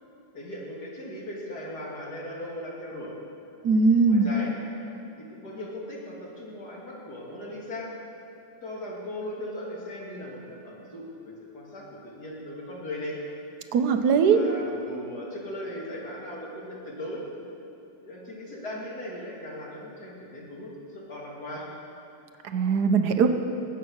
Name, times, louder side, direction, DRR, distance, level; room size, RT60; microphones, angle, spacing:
voice 1, 0.3-3.1 4.1-4.5 5.2-7.9 8.6-13.2 14.3-17.2 18.0-21.7, left 1 dB, 55° left, -4 dB, 3.0 m, -38 dB
voice 2, 3.6-4.3 13.7-14.4 22.5-23.3, right 5 dB, 65° right, 7 dB, 1.3 m, -20 dB
19.0 x 8.3 x 6.3 m, 2.8 s
omnidirectional pair, 2.0 m